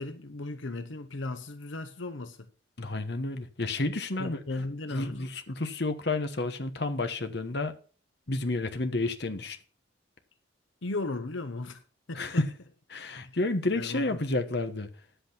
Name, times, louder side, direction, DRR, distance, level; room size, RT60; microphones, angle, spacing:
voice 1, 0.0-2.5 4.2-5.3 10.8-11.8 12.1-12.3 13.7-14.2, left 2 dB, 80° left, 0.9 m, -36 dB
voice 2, 2.8-4.4 4.9-7.7 8.3-9.6 12.1-12.5 12.9-14.9, left 2 dB, 60° left, 1.2 m, -30 dB
10.0 x 8.1 x 5.8 m
head